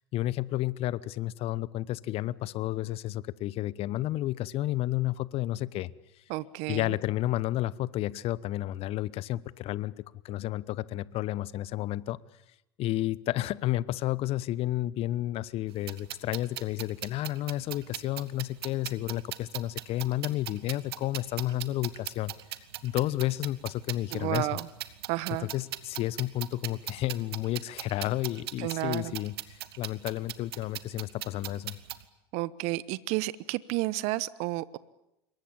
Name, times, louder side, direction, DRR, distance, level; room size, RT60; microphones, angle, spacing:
voice 1, 0.1-5.9 6.7-12.2 12.8-22.3 22.8-24.5 25.5-31.8, left 15 dB, 45° left, 20 dB, 1.0 m, -31 dB
voice 2, 6.3-7.0 24.1-24.7 25.1-25.5 28.6-29.1 32.3-34.8, right 18 dB, 55° right, 19 dB, 1.0 m, -31 dB
sound 1, 15.7-32.0, right 14 dB, 70° right, 1.6 m, -40 dB
26.5 x 23.0 x 8.8 m, 0.87 s
hypercardioid pair, 80°, 13 cm